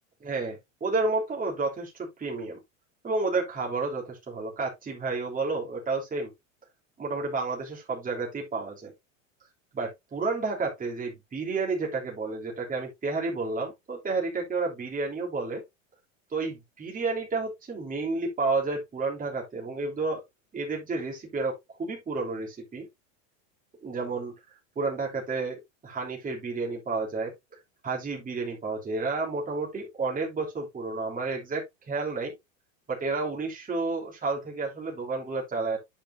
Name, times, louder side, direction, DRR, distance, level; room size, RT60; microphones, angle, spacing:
voice 1, 0.2-2.6 3.0-6.3 7.0-8.9 9.7-15.6 16.3-20.2 20.5-22.9 23.8-24.3 24.7-27.3 27.8-32.3 32.9-35.8, right 3 dB, 20° right, 3.2 m, -31 dB
10.0 x 5.4 x 2.7 m
supercardioid pair, 120°, 40 cm